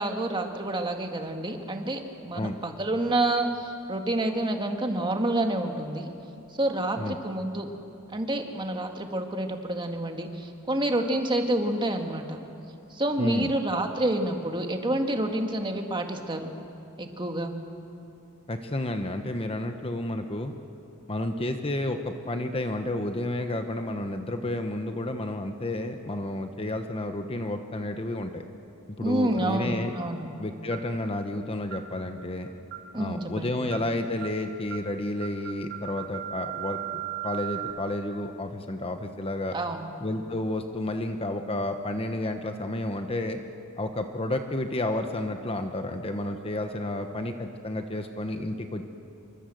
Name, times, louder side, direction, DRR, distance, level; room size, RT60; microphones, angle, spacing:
voice 1, 0.0-6.1 6.6-7.7 8.1-12.4 12.9-16.5 17.0-17.5 29.0-30.3 32.9-33.6 39.5-39.9, right 1 dB, 20° right, 4 dB, 1.9 m, -28 dB
voice 2, 13.2-13.5 18.5-20.5 21.1-28.4 28.9-29.9 30.4-32.5 33.0-39.5 40.0-43.4 43.8-48.9, left 1 dB, 25° left, 6 dB, 1.1 m, -31 dB
sound 1, 30.7-31.0 31.7-31.9 32.7-33.0 33.7-33.9 34.2-34.4 34.7-34.9 35.2-37.7, right 14 dB, 60° right, 2.7 m, -37 dB
27.5 x 24.0 x 7.8 m, 2.7 s
head